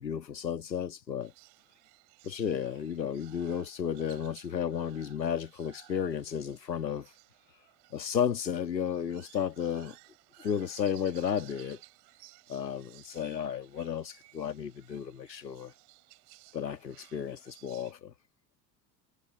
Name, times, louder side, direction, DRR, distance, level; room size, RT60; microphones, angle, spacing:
voice 1, 0.0-1.3 2.2-7.1 7.9-10.0 10.4-11.8 12.5-15.7 16.5-18.1, left 8 dB, 80° left, 1.6 m, -33 dB
sound 1, 1.2-17.9, right 35 dB, 55° right, 7.9 m, -58 dB
figure-of-eight pair, 75°, 50 cm